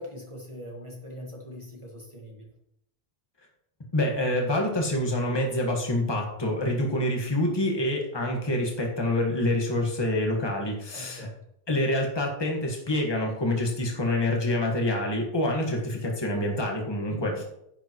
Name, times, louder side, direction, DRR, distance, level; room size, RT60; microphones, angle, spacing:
voice 1, 0.0-2.5 10.9-11.4 17.1-17.4, equal, 30° right, -1 dB, 1.6 m, -42 dB
voice 2, 3.9-11.3 11.7-17.4, left 1 dB, 25° left, 0 dB, 1.6 m, -26 dB
10.5 x 8.6 x 3.1 m, 0.80 s
omnidirectional pair, 1.0 m